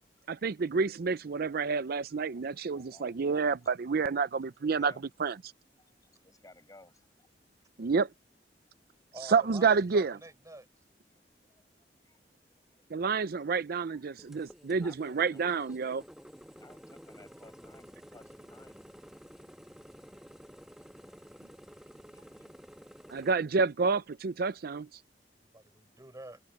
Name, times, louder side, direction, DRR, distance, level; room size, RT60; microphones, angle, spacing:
voice 1, 0.3-4.9 5.2-5.4 7.8-8.1 9.3-10.2 12.9-16.0 23.1-24.9, right 5 dB, 60° right, 0.5 m, -29 dB
voice 2, 2.3-3.9 4.7-5.0 5.8-7.3 11.1-12.2 12.5-13.6 13.9-14.0 14.8-15.8 16.5-18.9 21.0-21.4 22.1-22.5 23.0-23.1, left 2 dB, 20° left, 6.8 m, -60 dB
voice 3, 9.1-10.7 25.5-26.4, right 2 dB, 20° right, 4.3 m, -47 dB
sound 1, 14.2-23.3, equal, ahead, 1.1 m, -52 dB
head